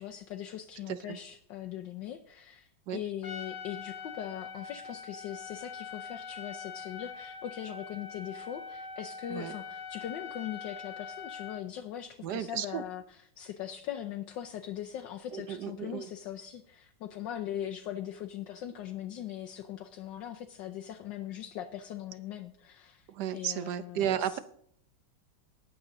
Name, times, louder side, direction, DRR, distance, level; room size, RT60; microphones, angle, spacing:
voice 1, 0.0-24.4, left 11 dB, 70° left, 4 dB, 1.3 m, -40 dB
voice 2, 0.9-1.2 2.9-3.0 9.3-9.5 12.2-12.8 15.3-16.1 23.1-24.4, right 10 dB, 65° right, 13 dB, 1.2 m, -34 dB
Trumpet, 3.2-11.6, left 6 dB, 50° left, 0.6 m, -43 dB
19.0 x 6.9 x 3.8 m, 0.65 s
omnidirectional pair, 2.2 m